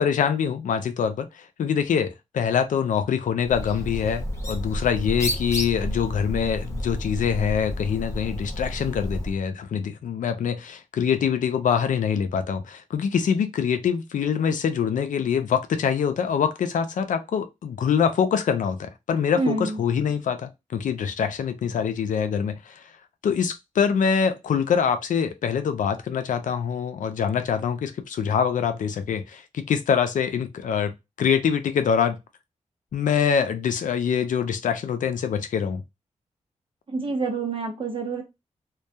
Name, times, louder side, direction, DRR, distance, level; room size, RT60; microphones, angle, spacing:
voice 1, 0.0-22.8 23.2-32.2 32.9-35.8, left 7 dB, 85° left, 0.5 m, -24 dB
Bird, 3.4-9.4, equal, 20° left, 0.9 m, -31 dB
voice 2, 19.4-19.8 36.9-38.2, right 3 dB, 45° right, 0.8 m, -27 dB
2.2 x 2.2 x 2.7 m
cardioid pair, 65°, 13 cm